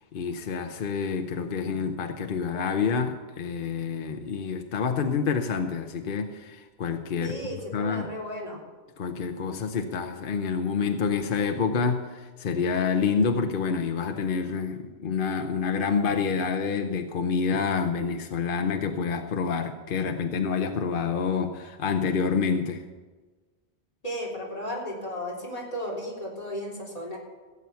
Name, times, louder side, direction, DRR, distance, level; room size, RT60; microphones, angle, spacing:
voice 1, 0.1-8.1 9.0-22.8, left 5 dB, 55° left, 6 dB, 1.0 m, -28 dB
voice 2, 7.2-8.6 24.0-27.2, equal, 35° left, -2 dB, 3.7 m, -34 dB
17.0 x 7.8 x 6.9 m, 1.3 s
omnidirectional pair, 1.1 m